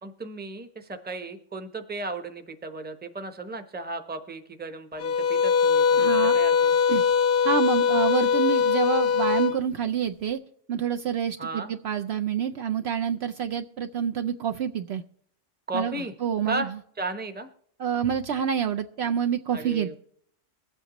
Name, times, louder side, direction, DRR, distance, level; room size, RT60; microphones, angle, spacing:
voice 1, 0.0-6.7 11.4-11.7 15.7-16.1 16.5-16.7 17.0-17.5 19.5-20.0, right 2 dB, 10° right, 7 dB, 0.8 m, -35 dB
sound 1, 5.0-9.6, left 6 dB, 55° left, 0.9 m, -21 dB
voice 2, 6.0-6.4 6.9-7.0 7.4-10.4 10.7-15.0 15.7-15.9 16.2-16.7 17.8-20.0, right 8 dB, 65° right, 6 dB, 0.8 m, -27 dB
23.0 x 7.9 x 3.0 m, 0.67 s
omnidirectional pair, 1.3 m